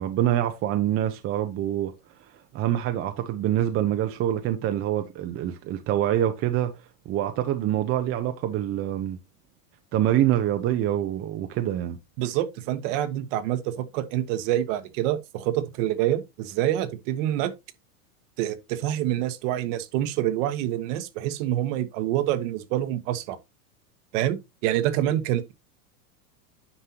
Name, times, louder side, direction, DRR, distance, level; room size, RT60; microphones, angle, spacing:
voice 1, 0.0-1.9 2.5-6.7 7.1-9.2 9.9-12.0, right 12 dB, 30° right, 0.8 m, -25 dB
voice 2, 12.2-17.5 18.4-23.4 24.1-25.5, right 12 dB, 50° right, 1.3 m, -26 dB
9.8 x 5.4 x 2.9 m
supercardioid pair, 130°, 45 cm